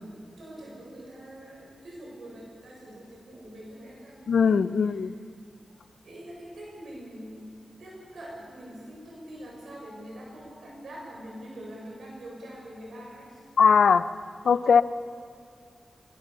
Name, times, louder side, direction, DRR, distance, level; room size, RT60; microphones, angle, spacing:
voice 1, 0.4-4.7 6.0-7.5 7.8-13.4, right 1 dB, 85° right, -3 dB, 7.5 m, -44 dB
voice 2, 4.3-5.1 13.6-14.1 14.4-14.8, left 6 dB, 90° left, 13 dB, 0.7 m, -20 dB
23.0 x 23.0 x 7.0 m, 2.3 s
wide cardioid pair, 80°, 0 cm